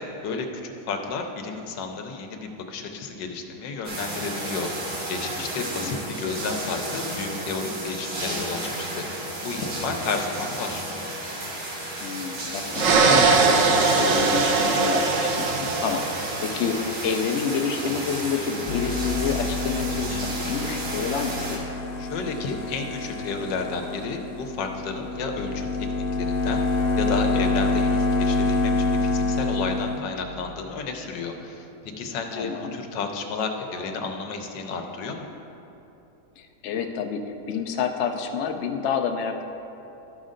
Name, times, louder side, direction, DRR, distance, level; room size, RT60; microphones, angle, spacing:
voice 1, 0.2-10.8 22.0-25.9 26.1-35.3, left 4 dB, 90° left, 4 dB, 1.4 m, -32 dB
sound 1, 3.8-21.6, right 1 dB, 85° right, 2.3 m, -32 dB
voice 2, 5.6-6.0 12.0-13.4 13.7-21.6 32.4-32.8 36.4-39.4, left 6 dB, 70° left, 5 dB, 0.6 m, -29 dB
sound 2, 12.7-16.6, right 4 dB, 60° right, 0.9 m, -21 dB
sound 3, 18.7-30.0, left 3 dB, 45° left, 1.0 m, -27 dB
13.0 x 5.3 x 3.8 m, 2.9 s
omnidirectional pair, 1.9 m